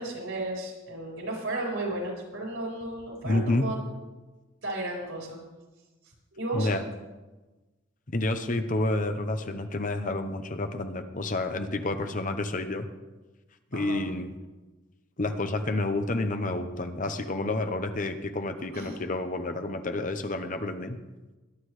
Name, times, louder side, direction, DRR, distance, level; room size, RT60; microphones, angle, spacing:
voice 1, 0.0-3.8 4.6-5.4 6.3-6.7 13.7-14.1 18.7-19.0, right 2 dB, 75° right, -3 dB, 4.8 m, -34 dB
voice 2, 3.2-3.7 6.5-6.8 8.1-12.9 13.7-14.3 15.2-21.0, left 2 dB, 40° left, 7 dB, 0.9 m, -29 dB
21.5 x 9.8 x 3.2 m, 1.2 s
head